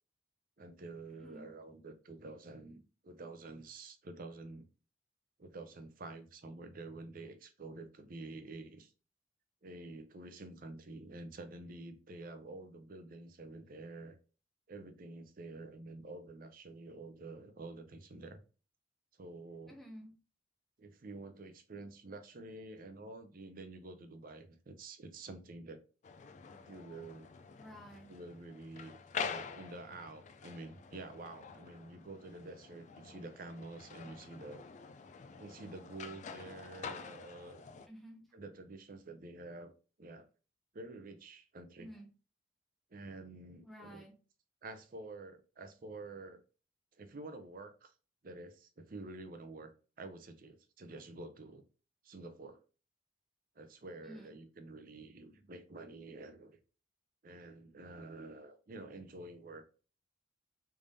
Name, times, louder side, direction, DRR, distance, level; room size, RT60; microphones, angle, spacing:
voice 1, 0.6-4.7 5.4-8.9 9.6-14.2 14.7-18.4 19.2-19.8 20.8-25.8 26.7-27.3 28.1-34.6 35.4-37.7 38.3-39.7 40.0-40.3 40.7-41.9 42.9-44.1 44.6-46.4 47.0-47.9 48.2-49.7 50.0-51.6 52.0-52.6 53.6-56.6 57.2-59.7, right 2 dB, 50° right, 0.6 m, -49 dB
voice 2, 1.1-1.5 19.7-20.1 27.6-28.1 37.9-38.3 41.8-42.1 43.6-44.2 54.0-54.4, equal, ahead, 0.8 m, -51 dB
sound 1, 26.0-37.9, left 6 dB, 40° left, 0.3 m, -47 dB
3.5 x 3.3 x 2.6 m
head